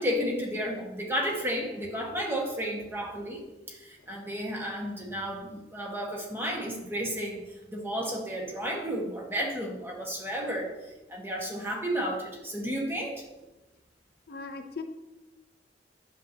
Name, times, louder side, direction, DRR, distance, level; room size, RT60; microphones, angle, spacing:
voice 1, 0.0-3.4 3.7-7.4 7.7-13.2, equal, 15° right, -1 dB, 1.4 m, -32 dB
voice 2, 14.3-14.8, left 4 dB, 60° left, 6 dB, 0.6 m, -39 dB
9.8 x 6.6 x 2.8 m, 1.1 s
head